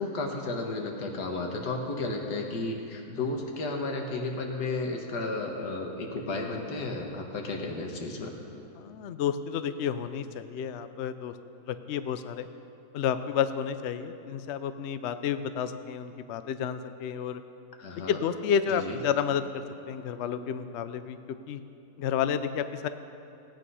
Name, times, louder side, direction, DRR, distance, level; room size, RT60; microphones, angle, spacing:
voice 1, 0.0-8.3 17.8-18.2 18.7-19.0, left 3 dB, 90° left, 2 dB, 1.9 m, -33 dB
voice 2, 8.8-11.3 11.7-12.5 12.9-17.4 18.1-21.6 22.0-22.9, left 8 dB, 65° left, 11 dB, 0.7 m, -31 dB
16.5 x 9.0 x 5.6 m, 2.8 s
omnidirectional pair, 1.7 m